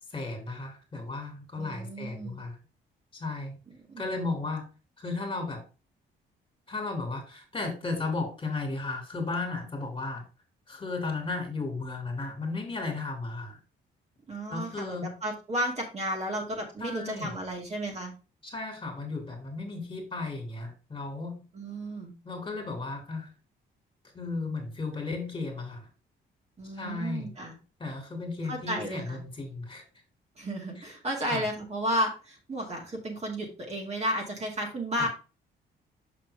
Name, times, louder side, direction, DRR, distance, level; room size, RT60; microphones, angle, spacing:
voice 1, 0.1-2.6 3.2-3.6 4.0-4.6 5.0-5.6 6.7-10.2 10.7-13.6 14.5-15.1 16.8-17.4 18.4-21.4 22.2-23.3 24.1-25.9 26.8-27.3 27.8-29.8 31.3-31.4 34.9-35.1, left 3 dB, 25° left, 3 dB, 2.7 m, -34 dB
voice 2, 1.6-2.4 3.9-4.2 14.3-18.1 21.5-22.1 26.6-27.6 28.5-29.2 30.4-35.1, equal, 35° right, 0 dB, 2.4 m, -33 dB
6.2 x 5.8 x 3.5 m, 0.33 s
cardioid pair, 90°, 20 cm